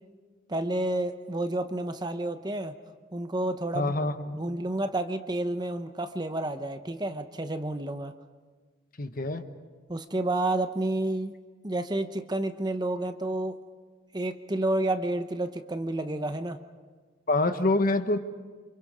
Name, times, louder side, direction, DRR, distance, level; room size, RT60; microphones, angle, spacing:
voice 1, 0.5-2.7 3.1-4.1 4.3-8.1 9.9-11.3 11.6-13.6 14.1-16.6, right 1 dB, 20° right, 9 dB, 0.9 m, -30 dB
voice 2, 3.7-4.4 9.0-9.4 17.3-18.2, left 2 dB, 45° left, 8 dB, 1.2 m, -26 dB
29.0 x 27.0 x 4.9 m, 1.5 s
head